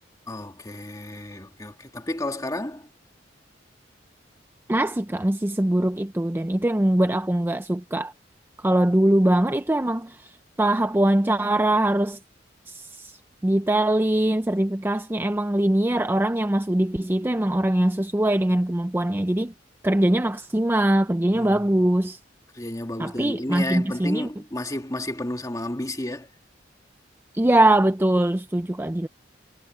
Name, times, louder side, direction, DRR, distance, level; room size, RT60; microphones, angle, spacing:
voice 1, 0.3-2.9 21.3-21.8 22.5-26.3 28.6-28.7, left 1 dB, 20° left, 1.9 m, -32 dB
voice 2, 4.7-8.1 8.6-10.2 10.6-12.2 12.7-13.1 13.4-19.5 19.8-22.2 23.0-24.3 27.3-29.1, right 1 dB, 10° right, 0.5 m, -22 dB
head